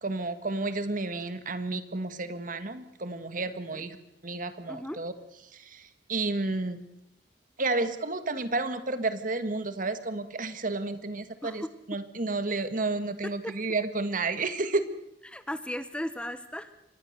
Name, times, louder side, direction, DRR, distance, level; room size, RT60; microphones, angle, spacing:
voice 1, 0.0-4.0 4.2-5.1 5.5-6.8 7.6-14.8, right 3 dB, 50° right, 10 dB, 1.7 m, -31 dB
voice 2, 4.7-5.0 11.4-11.7 13.2-13.5 15.2-16.7, left 1 dB, 5° left, 12 dB, 0.9 m, -36 dB
25.0 x 20.0 x 6.7 m, 0.83 s
head